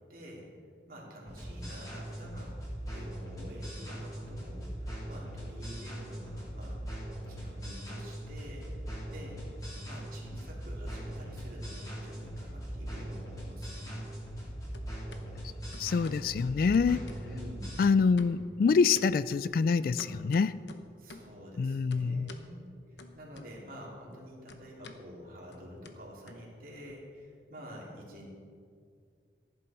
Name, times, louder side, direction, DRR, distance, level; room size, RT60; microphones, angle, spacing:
voice 1, 0.1-0.5 0.9-2.5 2.9-6.8 7.3-8.7 9.1-14.1 17.2-17.8 21.0-28.3, equal, 50° right, -3 dB, 3.1 m, -48 dB
sound 1, 1.2-17.8, equal, 20° left, 3.8 m, -40 dB
sound 2, 11.8-12.6 12.9-14.5 14.7-15.2 15.7-16.3 16.7-17.5 17.8-18.5 18.9-21.4 21.9-22.5 23.0-23.8 24.1-26.9, left 3 dB, 80° left, 1.0 m, -52 dB
voice 2, 15.8-17.0 17.8-20.6 21.6-22.3, left 5 dB, 55° left, 17 dB, 0.3 m, -26 dB
14.5 x 11.5 x 4.4 m, 2.2 s
head